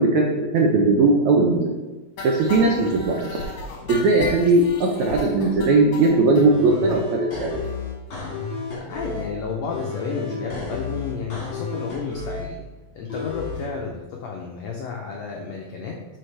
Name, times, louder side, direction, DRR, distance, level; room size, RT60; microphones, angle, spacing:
voice 1, 0.0-1.7 2.2-3.4 3.9-7.7, right 3 dB, 75° right, 0 dB, 1.8 m, -19 dB
sound 1, 2.2-6.5 6.9-7.0 7.3-7.4 7.6-7.8 8.1-8.2, left 2 dB, 60° left, 2.1 m, -34 dB
sound 2, 6.5-9.3 9.7-12.5 13.1-13.7, left 4 dB, 45° left, 2.3 m, -32 dB
voice 2, 8.8-12.7 12.9-15.9, left 5 dB, 85° left, -1 dB, 1.5 m, -31 dB
7.8 x 5.7 x 3.3 m, 1.2 s
omnidirectional pair, 4.0 m